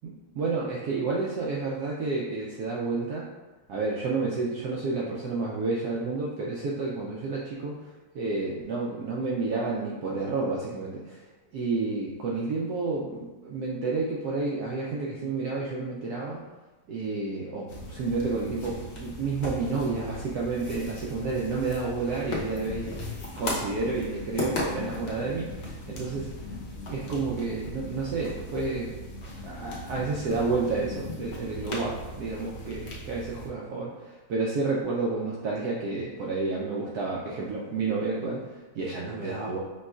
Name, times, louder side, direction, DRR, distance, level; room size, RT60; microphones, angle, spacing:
voice 1, 0.0-3.3 3.7-11.3 11.5-16.4 16.9-22.9 23.4-26.3 26.9-29.0 29.4-39.6, right 3 dB, 75° right, -4 dB, 0.8 m, -30 dB
sound 1, 17.7-33.5, left 1 dB, 55° left, 0.7 m, -37 dB
5.3 x 3.0 x 2.3 m, 1.2 s
omnidirectional pair, 2.2 m